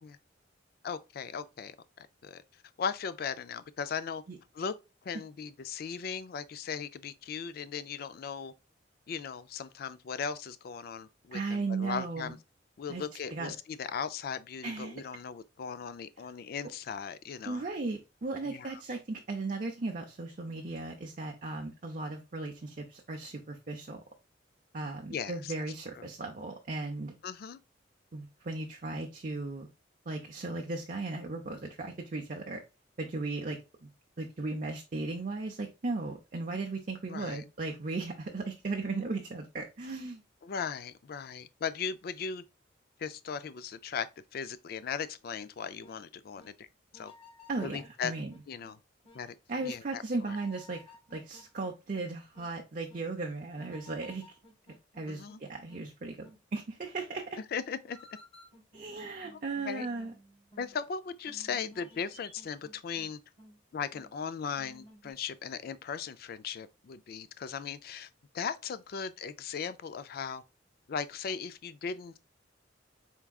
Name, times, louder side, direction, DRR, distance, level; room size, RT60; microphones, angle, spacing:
voice 1, 0.8-2.4 2.8-4.2 4.5-4.7 5.0-8.5 9.1-12.4 12.8-17.6 18.4-18.8 25.1-26.0 27.2-27.6 37.1-37.4 40.4-42.4 43.0-44.1 44.3-46.7 46.9-47.1 47.6-48.1 48.5-48.8 49.1-49.3 49.6-50.4 55.1-55.4 57.5-58.0 59.7-59.9 60.6-63.2 63.7-68.1 68.3-70.4 70.9-72.2, left 6 dB, 50° left, 0.3 m, -38 dB
voice 2, 11.3-12.3 12.9-13.0 13.3-13.5 14.6-15.0 17.5-24.0 24.7-27.1 28.1-29.7 30.1-32.6 33.0-33.9 34.2-40.2 47.5-48.3 49.5-50.8 51.1-54.4 55.0-57.4 58.7-60.1, right 3 dB, 45° right, 0.5 m, -36 dB
sound 1, 45.8-46.0 46.4-46.5 46.9-48.7 49.0-49.2 49.6-49.7 50.2-52.0 52.3-52.5 52.9-53.0 53.6-55.4 55.7-55.9 56.2-56.4 57.9-60.8 61.3-63.1 63.4-63.6 63.9-64.1 64.6-65.1, left 1 dB, 30° left, 1.2 m, -56 dB
4.5 x 3.5 x 2.3 m
head